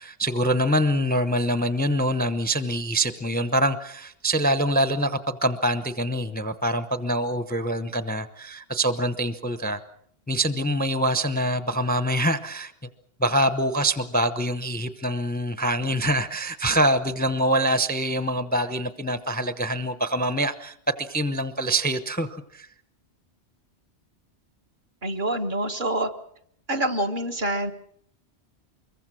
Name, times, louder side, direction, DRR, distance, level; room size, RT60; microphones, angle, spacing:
voice 1, 0.0-9.8 10.3-12.7 13.2-22.7, right 1 dB, 10° left, 11 dB, 0.8 m, -25 dB
voice 2, 25.0-26.1 26.7-27.7, right 1 dB, 50° right, 4 dB, 1.7 m, -26 dB
25.0 x 22.5 x 6.3 m, 0.68 s
omnidirectional pair, 1.1 m